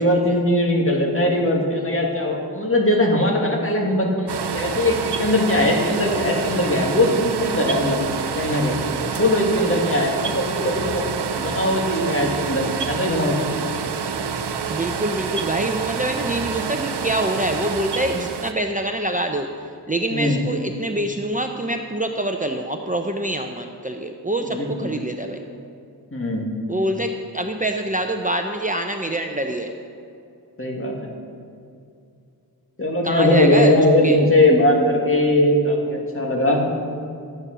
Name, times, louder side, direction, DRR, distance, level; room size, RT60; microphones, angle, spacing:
voice 1, 0.0-8.0 8.3-8.7 9.2-11.0 11.4-13.4 20.1-20.4 24.4-25.1 26.1-26.5 30.6-31.1 32.8-36.7, left 1 dB, 35° left, -1 dB, 2.4 m, -20 dB
sound 1, 4.3-18.5, right 6 dB, 85° right, 0.7 m, -27 dB
voice 2, 14.7-19.5 19.9-25.4 26.7-29.7 33.0-33.7 34.0-34.2, right 1 dB, 20° right, 4 dB, 0.7 m, -25 dB
13.0 x 9.6 x 6.1 m, 2.5 s
wide cardioid pair, 70°, 40 cm